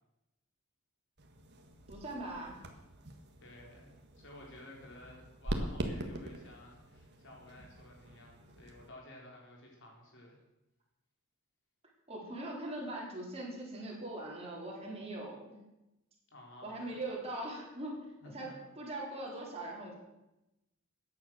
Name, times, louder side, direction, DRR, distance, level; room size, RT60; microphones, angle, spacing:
sound 1, 1.2-8.9, right 1 dB, 50° right, 1.6 m, -43 dB
voice 1, 1.9-2.6 12.1-15.6 16.6-18.0 18.2-19.9, right 1 dB, 30° right, -2 dB, 4.0 m, -41 dB
voice 2, 3.4-10.4 16.3-17.0 18.2-18.6, left 1 dB, 60° left, -1 dB, 4.3 m, -53 dB
14.0 x 9.5 x 6.4 m, 0.96 s
head